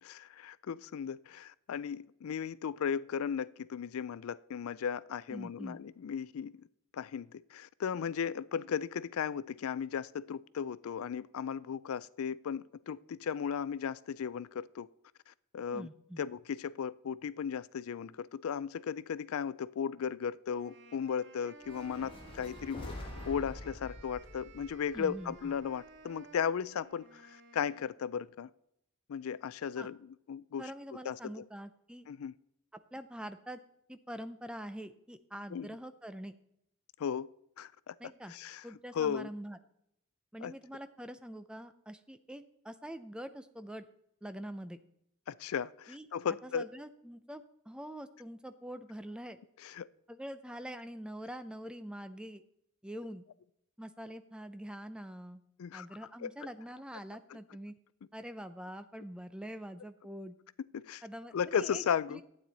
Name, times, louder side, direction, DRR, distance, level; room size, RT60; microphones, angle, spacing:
voice 1, 0.0-6.5 6.9-14.9 15.3-15.9 16.2-28.5 29.1-30.6 31.1-31.3 32.1-32.3 35.5-35.7 37.0-37.3 37.6-37.9 38.3-38.6 38.9-39.3 40.4-40.5 45.3-46.7 49.6-49.9 55.6-55.9 56.2-56.3 60.7-61.0 61.3-62.2, left 7 dB, 85° left, 0.4 m, -36 dB
voice 2, 5.3-5.8 15.7-16.2 24.9-25.5 29.8-29.9 30.6-32.1 32.9-33.6 33.9-36.3 38.0-38.3 38.6-39.6 40.3-43.9 44.2-44.8 45.9-46.1 46.4-49.4 50.1-52.4 52.8-53.2 53.8-55.4 55.7-57.7 58.1-60.3 61.0-61.8 62.1-62.2, equal, 5° right, 0.5 m, -44 dB
sound 1, 20.5-28.0, right 3 dB, 55° right, 1.0 m, -55 dB
sound 2, 21.6-25.9, left 1 dB, 25° left, 1.6 m, -46 dB
12.0 x 8.8 x 4.1 m
head